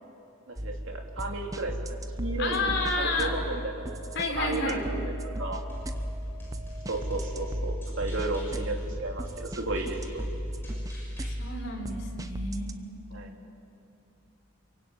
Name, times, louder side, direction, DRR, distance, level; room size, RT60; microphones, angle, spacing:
voice 1, 0.5-3.9 4.4-5.6 6.9-10.2 13.1-13.3, right 2 dB, 60° right, 2 dB, 3.3 m, -34 dB
sound 1, 0.6-12.7, equal, 15° right, 0.9 m, -35 dB
sound 2, 2.2-7.5, equal, 80° left, 3.5 m, -49 dB
voice 2, 2.4-3.3 4.1-4.8 11.3-12.8, left 3 dB, 50° left, 1 dB, 4.4 m, -31 dB
sound 3, 5.7-11.3, equal, 10° left, 6.4 m, -45 dB
27.5 x 24.0 x 9.0 m, 2.7 s
head